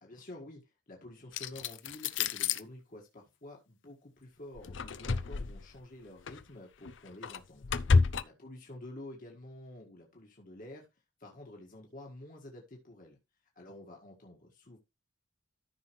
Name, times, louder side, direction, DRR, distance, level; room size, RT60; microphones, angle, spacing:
voice 1, 0.0-7.7 8.2-10.9 11.2-13.2 13.6-14.8, left 1 dB, 45° left, 0 dB, 1.8 m, -49 dB
sound 1, 1.3-2.6 4.6-5.7 6.3-6.4 6.8-8.2, left 4 dB, 75° left, 0.6 m, -29 dB
13.5 x 5.8 x 3.2 m, 0.24 s
head